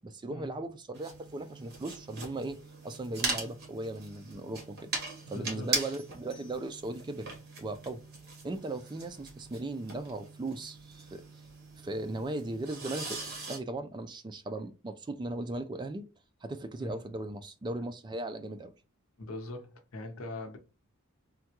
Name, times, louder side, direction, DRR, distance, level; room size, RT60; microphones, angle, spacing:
voice 1, 0.0-2.6 2.8-4.9 5.3-7.3 7.6-8.0 8.4-11.2 11.8-13.2 13.5-16.1 16.4-18.7, right 2 dB, 20° right, 0.3 m, -37 dB
sound 1, 0.9-13.6, right 3 dB, 50° right, 1.3 m, -40 dB
voice 2, 5.3-5.7 16.8-17.0 19.2-20.6, left 2 dB, 80° left, 0.7 m, -41 dB
3.5 x 2.2 x 2.9 m
head